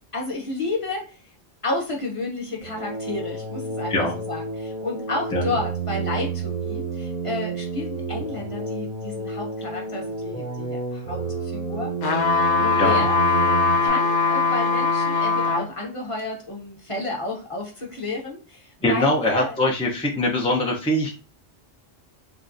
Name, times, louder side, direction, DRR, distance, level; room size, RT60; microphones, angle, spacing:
voice 1, 0.1-1.2 1.6-11.9 12.6-13.5 13.8-19.6, left 2 dB, 30° left, -2 dB, 0.9 m, -31 dB
sound 1, 2.6-13.9, right 4 dB, 55° right, 0.8 m, -30 dB
sound 2, 12.0-15.7 16.2-16.3, left 4 dB, 80° left, 1.0 m, -21 dB
voice 2, 18.8-21.2, left 1 dB, 10° left, -2 dB, 0.3 m, -22 dB
3.6 x 2.2 x 2.5 m, 0.34 s
omnidirectional pair, 1.2 m